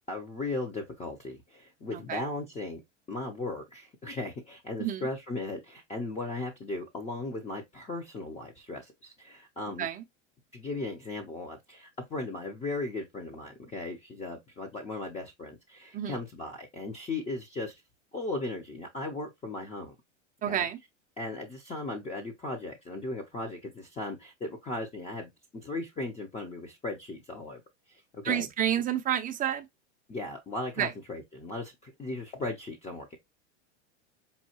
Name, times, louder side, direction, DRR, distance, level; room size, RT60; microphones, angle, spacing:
voice 1, 0.1-2.8 3.1-9.9 10.5-17.8 18.1-19.9 20.5-20.7 21.2-27.6 27.9-28.5 30.1-33.2, left 2 dB, 20° left, 0.7 m, -37 dB
voice 2, 20.4-20.8 28.2-29.7 30.8-30.9, right 10 dB, 25° right, 0.6 m, -29 dB
5.4 x 2.3 x 2.9 m
hypercardioid pair, 115°, 36 cm